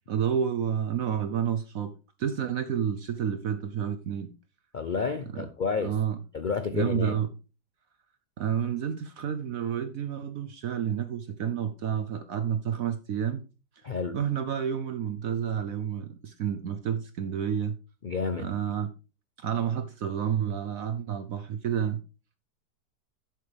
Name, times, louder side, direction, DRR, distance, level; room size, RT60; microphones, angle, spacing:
voice 1, 0.1-4.3 5.3-5.5 5.8-6.2 6.7-7.3 8.4-13.4 14.1-17.8 18.4-18.9 19.4-22.0, right 8 dB, 65° right, 1.0 m, -30 dB
voice 2, 4.7-6.0 6.3-7.2 13.8-14.2 18.0-18.5, left 5 dB, 85° left, 0.4 m, -30 dB
12.5 x 7.6 x 3.4 m
omnidirectional pair, 1.8 m